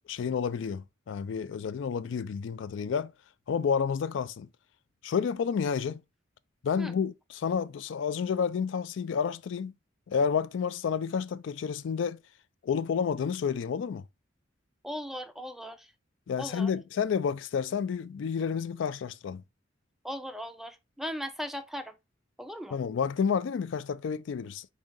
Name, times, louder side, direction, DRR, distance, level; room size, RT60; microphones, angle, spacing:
voice 1, 0.1-3.1 3.5-4.5 5.0-6.0 6.6-9.7 10.1-12.2 12.6-14.0 16.3-19.4 22.7-24.7, left 6 dB, 70° left, 0.3 m, -30 dB
voice 2, 14.8-15.9 16.4-16.7 20.0-21.9 22.4-22.8, equal, ahead, 0.4 m, -38 dB
4.9 x 2.6 x 3.6 m
head